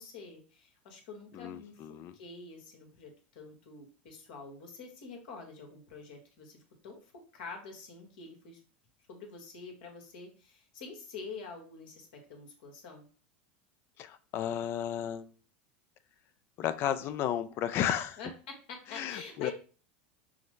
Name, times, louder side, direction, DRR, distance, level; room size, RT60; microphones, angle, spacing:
voice 1, 0.0-1.8 2.1-7.0 7.3-8.6 9.1-13.1 18.2-19.5, left 5 dB, 70° left, 3 dB, 1.3 m, -46 dB
voice 2, 1.3-2.2 14.0-15.3 16.6-18.2 18.9-19.5, left 10 dB, 45° left, 13 dB, 0.4 m, -33 dB
5.6 x 2.1 x 3.2 m, 0.38 s
supercardioid pair, 105°, 6 cm